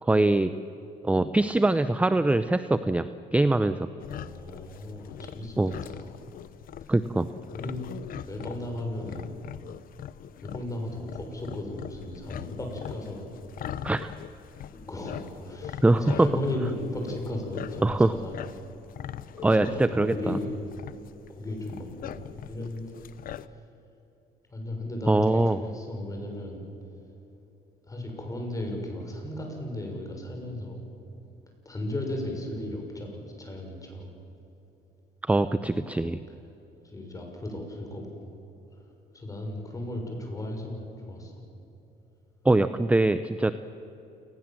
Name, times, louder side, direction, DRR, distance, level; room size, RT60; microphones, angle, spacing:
voice 1, 0.0-0.5 1.0-3.9 5.6-5.7 6.9-7.3 13.8-14.1 15.8-16.3 17.8-18.1 19.4-20.4 25.1-25.6 35.2-36.2 42.4-43.5, right 2 dB, 10° right, 12 dB, 0.7 m, -23 dB
sound 1, 4.0-23.5, left 10 dB, 55° left, 0.8 m, -42 dB
voice 2, 4.1-6.2 6.8-6.9 7.5-7.8 8.1-9.3 10.4-13.3 14.7-18.5 19.4-20.5 21.3-23.1 23.5-23.6 24.5-26.7 27.9-30.9 31.6-34.1 36.8-38.3 38.7-38.8 39.1-41.4, left 1 dB, 20° left, 2 dB, 6.6 m, -35 dB
28.0 x 20.0 x 7.7 m, 3.0 s
cardioid pair, 110°, 17 cm